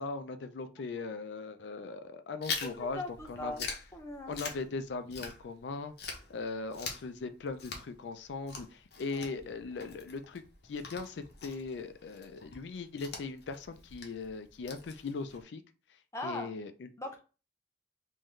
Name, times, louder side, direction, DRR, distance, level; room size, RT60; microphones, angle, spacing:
voice 1, 0.0-3.5 4.3-15.6 16.2-16.9, left 4 dB, 75° left, 9 dB, 0.4 m, -39 dB
Chewing mastication, 2.4-5.7 6.0-15.4, left 4 dB, 60° left, 0.9 m, -44 dB
voice 2, 2.6-3.6 3.9-4.4 9.0-9.3 16.1-16.5 17.0-17.2, left 2 dB, 15° left, 4 dB, 0.6 m, -40 dB
3.7 x 2.6 x 3.1 m, 0.33 s
head